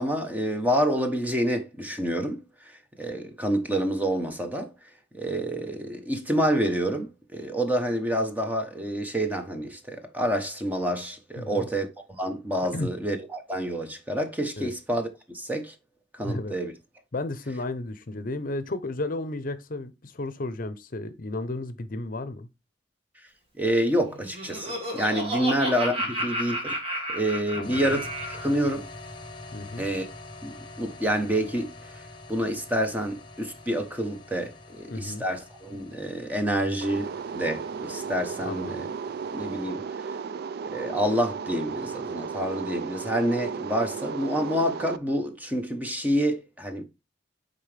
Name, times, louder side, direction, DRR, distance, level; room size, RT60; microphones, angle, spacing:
voice 1, 0.0-2.4 3.0-4.7 5.1-11.9 12.2-15.1 15.3-15.7 16.1-16.7 23.6-26.8 27.1-28.9 29.8-30.0 30.4-31.7 32.3-38.9 39.3-39.8 40.7-46.8, equal, 10° right, 1.0 m, -28 dB
voice 2, 11.4-11.7 12.7-12.9 14.6-14.7 16.2-16.5 17.1-22.5 27.6-28.0 29.5-29.9 34.9-35.2 38.4-38.9, left 2 dB, 50° left, 0.7 m, -33 dB
Laughter, 24.1-28.5, right 1 dB, 30° right, 2.0 m, -32 dB
sound 1, 27.6-39.7, left 2 dB, 25° left, 1.1 m, -45 dB
sound 2, 36.8-45.0, right 6 dB, 55° right, 0.3 m, -35 dB
9.4 x 3.9 x 3.3 m
head